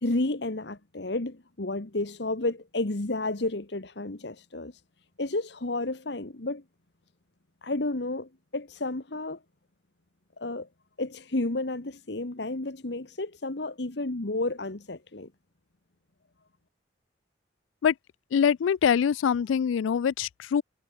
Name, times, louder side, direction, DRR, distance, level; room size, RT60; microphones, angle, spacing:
voice 1, 0.0-4.8 5.2-6.6 7.6-9.4 10.4-10.7 11.0-15.3, left 2 dB, 60° left, 1.3 m, -31 dB
voice 2, 18.3-20.6, left 7 dB, 85° left, 0.3 m, -24 dB
head